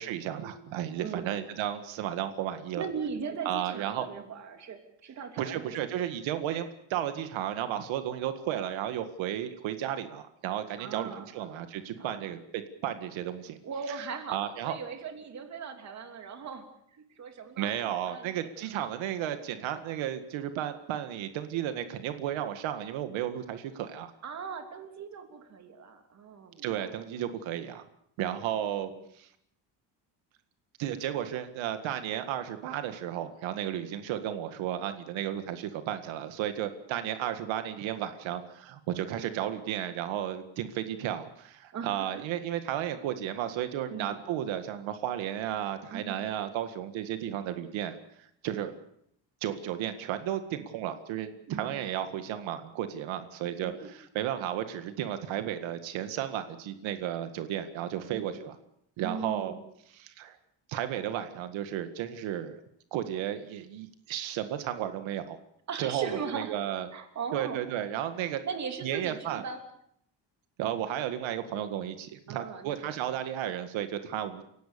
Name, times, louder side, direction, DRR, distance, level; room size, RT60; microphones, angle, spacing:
voice 1, 0.0-2.9 3.5-4.1 5.4-13.6 13.9-14.0 14.3-14.7 17.6-24.1 26.6-27.8 28.2-28.9 29.2-29.3 30.8-48.0 48.4-48.7 49.4-58.6 59.0-59.5 59.9-60.4 60.7-62.6 62.9-65.4 65.8-66.9 67.3-68.4 68.8-69.4 70.6-74.4, right 11 dB, 90° right, 9 dB, 1.9 m, -33 dB
voice 2, 1.0-1.3 2.8-5.9 10.8-11.6 12.0-12.3 13.6-16.6 17.0-18.7 24.2-26.9 28.6-29.0 41.7-42.3 43.9-44.2 45.9-46.3 51.5-51.8 53.6-53.9 58.1-58.5 59.0-59.6 65.7-66.5 66.9-67.6 68.4-69.6 72.3-73.0, right 6 dB, 35° right, 6 dB, 3.0 m, -39 dB
30.0 x 17.0 x 6.9 m, 0.71 s
cardioid pair, 175°, 45 cm